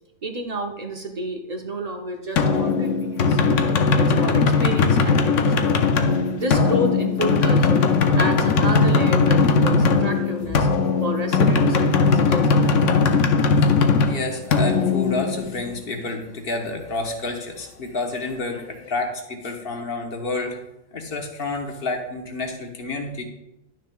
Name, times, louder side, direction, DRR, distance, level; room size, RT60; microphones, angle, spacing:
voice 1, 0.2-3.4 4.0-5.7 6.3-7.9 8.1-10.7 11.0-12.8, right 1 dB, 40° right, 3 dB, 0.7 m, -29 dB
sound 1, 2.4-15.9, left 4 dB, 75° left, 1.0 m, -19 dB
voice 2, 14.1-20.6 20.9-23.2, left 3 dB, 50° left, 2 dB, 1.3 m, -29 dB
11.5 x 6.4 x 2.2 m, 0.91 s
omnidirectional pair, 1.3 m